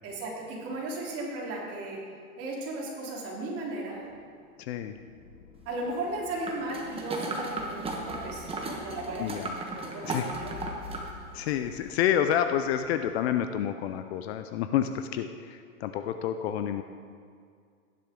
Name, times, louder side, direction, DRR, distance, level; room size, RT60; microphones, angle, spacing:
voice 1, 0.0-2.0 2.4-4.1 5.7-9.4 9.7-10.6, right 2 dB, 30° right, -4 dB, 3.6 m, -36 dB
sound 1, 3.9-12.8, left 4 dB, 65° left, 2.2 m, -49 dB
voice 2, 4.6-4.9 9.2-9.5 10.0-10.3 11.3-16.8, left 10 dB, 45° left, 8 dB, 0.7 m, -29 dB
sound 2, 6.4-11.1 11.5-11.6, right 2 dB, 15° right, 1.4 m, -36 dB
15.0 x 10.5 x 3.8 m, 2.2 s
hypercardioid pair, 130°, 44 cm